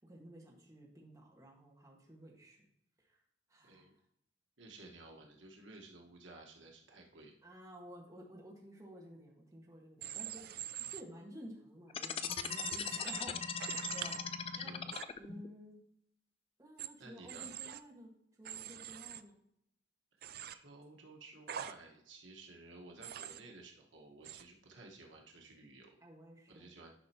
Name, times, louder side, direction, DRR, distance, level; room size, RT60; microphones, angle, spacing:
voice 1, 0.0-2.7 3.0-3.2 3.5-3.9 7.4-14.9 15.2-15.8 16.6-18.1 18.4-19.4 26.0-26.8, equal, 15° right, -3 dB, 1.6 m, -53 dB
voice 2, 3.6-3.9 4.6-7.3 14.5-14.9 17.0-17.5 20.2-25.9 26.5-26.9, right 2 dB, 85° right, 0 dB, 1.4 m, -55 dB
Human voice / Train, 10.0-11.0 12.4-13.2 13.6-14.2 14.9-15.0 16.8-16.9 17.3-17.8 18.4-19.2 20.2-20.5 21.5-21.7 23.0-23.4 24.2-24.4, right 11 dB, 55° right, 0.3 m, -44 dB
sound 1, 11.9-15.5, left 7 dB, 30° left, 0.3 m, -39 dB
10.5 x 5.4 x 2.9 m, 0.75 s
head